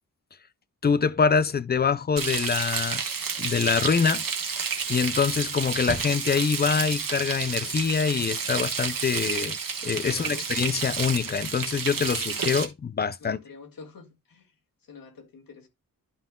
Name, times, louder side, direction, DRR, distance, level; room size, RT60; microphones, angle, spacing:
voice 1, 0.8-3.0 3.4-4.2 4.9-9.6 9.8-13.4, left 6 dB, 30° left, 0.4 m, -25 dB
Frying (food), 2.2-12.6, right 6 dB, 75° right, 1.3 m, -30 dB
voice 2, 10.1-10.5 13.2-14.5 14.9-15.7, left 5 dB, 80° left, 1.8 m, -46 dB
11.5 x 5.5 x 2.2 m
wide cardioid pair, 170°, 34 cm